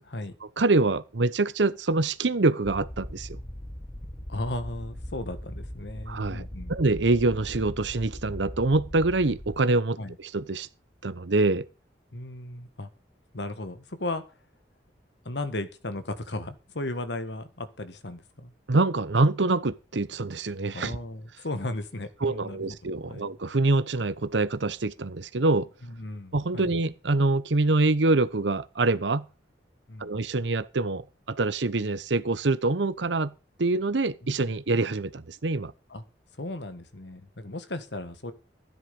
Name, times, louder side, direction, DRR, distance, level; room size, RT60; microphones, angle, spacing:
voice 1, 0.6-3.4 6.1-10.7 11.0-11.7 18.7-20.9 22.2-25.7 26.3-29.3 30.0-33.3 33.6-35.7, right 2 dB, 80° right, 0.9 m, -25 dB
sound 1, 2.6-9.6, equal, 30° left, 2.1 m, -40 dB
voice 2, 4.3-6.8 10.0-10.1 12.1-12.9 13.3-14.2 15.2-18.5 20.7-22.8 23.1-23.3 25.8-26.7 29.9-30.2 34.2-34.4 35.9-36.0 36.4-38.3, left 2 dB, 75° left, 1.6 m, -36 dB
13.0 x 10.5 x 5.3 m
head